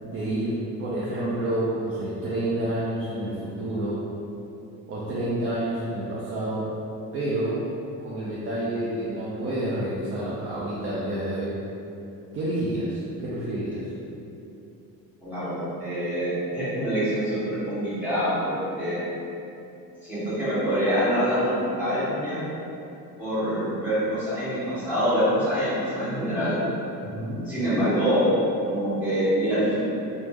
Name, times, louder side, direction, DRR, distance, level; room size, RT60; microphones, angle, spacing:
voice 1, 0.0-4.0 4.9-6.7 7.1-7.6 8.0-11.5 12.3-13.9 27.0-27.4, right 1 dB, 40° right, -8 dB, 0.5 m, -29 dB
voice 2, 15.2-19.0 20.0-22.5 23.2-26.6 27.5-28.3 28.7-29.8, equal, 5° right, -14 dB, 1.4 m, -25 dB
3.0 x 2.1 x 3.4 m, 2.8 s
cardioid pair, 145°, 36 cm